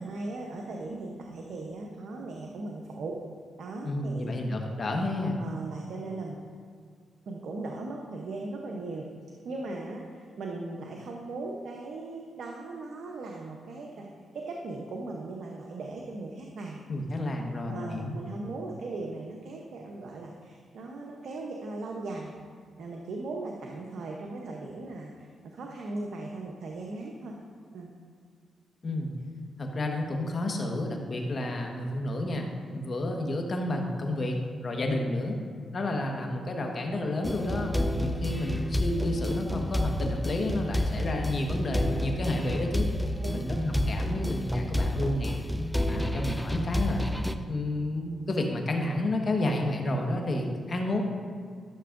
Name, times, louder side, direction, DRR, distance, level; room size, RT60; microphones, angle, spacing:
voice 1, 0.0-3.2 3.6-4.3 5.1-6.4 7.3-9.1 9.4-14.1 14.3-16.8 17.6-22.3 22.8-27.4 27.7-27.9 43.2-43.5, right 2 dB, 75° right, 0 dB, 0.8 m, -38 dB
voice 2, 3.8-5.4 16.9-18.1 28.8-29.1 29.6-35.4 35.7-42.9 43.3-45.4 45.8-47.1 47.5-51.0, left 1 dB, 50° left, 2 dB, 1.4 m, -30 dB
sound 1, 37.2-47.3, left 1 dB, ahead, 0.5 m, -30 dB
13.0 x 6.7 x 2.6 m, 2.1 s
supercardioid pair, 55°, 0 cm